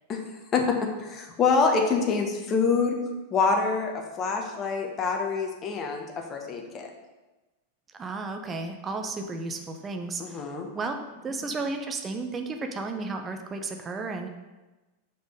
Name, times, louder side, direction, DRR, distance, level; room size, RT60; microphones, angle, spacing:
voice 1, 0.5-3.0 3.3-6.9 10.2-10.7, left 4 dB, 30° left, 3 dB, 1.2 m, -26 dB
voice 2, 7.9-11.0 11.2-14.3, right 3 dB, 20° right, 5 dB, 0.8 m, -33 dB
6.2 x 5.1 x 5.2 m, 1.1 s
figure-of-eight pair, 90°, 0 cm